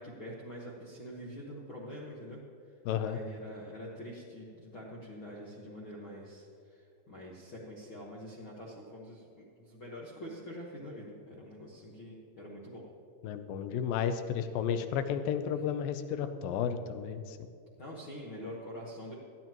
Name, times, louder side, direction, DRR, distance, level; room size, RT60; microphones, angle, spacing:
voice 1, 0.0-12.9 17.8-19.1, equal, 60° left, -4 dB, 1.3 m, -45 dB
voice 2, 2.9-3.2 13.2-17.4, left 8 dB, 75° left, 9 dB, 2.2 m, -32 dB
19.0 x 14.0 x 3.0 m, 2.6 s
omnidirectional pair, 4.5 m